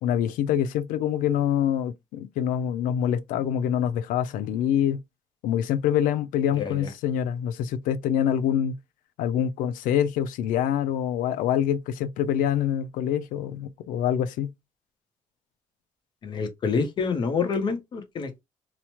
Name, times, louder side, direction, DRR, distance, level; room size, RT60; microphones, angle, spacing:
voice 1, 0.0-5.0 5.4-8.7 9.2-14.5, left 9 dB, 85° left, 0.4 m, -25 dB
voice 2, 6.6-6.9 16.2-18.4, left 5 dB, 35° left, 0.6 m, -27 dB
2.9 x 2.0 x 2.9 m
cardioid pair, 180°, 14 cm